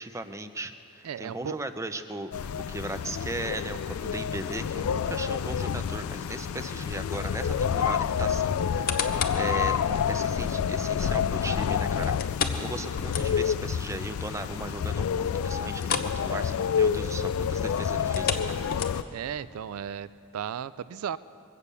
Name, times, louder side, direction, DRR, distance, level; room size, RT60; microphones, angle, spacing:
voice 1, 0.0-18.6, right 2 dB, 15° right, 9 dB, 0.5 m, -37 dB
voice 2, 1.0-1.6 19.1-21.2, right 8 dB, 80° right, 17 dB, 0.3 m, -35 dB
sound 1, 2.3-19.0, left 7 dB, 80° left, 0.4 m, -28 dB
sound 2, 8.6-9.5 10.0-10.1 12.2-13.7 14.0-14.1 14.5-14.6 15.8-16.2 16.5-16.7 18.0-19.3 19.9-20.0, left 6 dB, 45° left, 0.9 m, -32 dB
22.5 x 8.4 x 6.7 m, 2.7 s
head